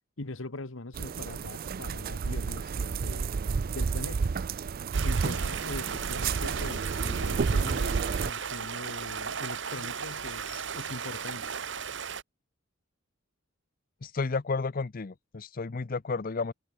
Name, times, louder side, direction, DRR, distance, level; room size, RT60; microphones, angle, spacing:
voice 1, 0.2-3.3 3.7-4.3 5.0-11.5, left 2 dB, 80° left, 1.5 m, -42 dB
sound 1, 0.9-8.3, right 5 dB, 45° right, 0.4 m, -30 dB
Stream, 4.9-12.2, right 6 dB, 60° right, 1.6 m, -36 dB
voice 2, 14.0-16.5, left 4 dB, 45° left, 0.6 m, -32 dB
head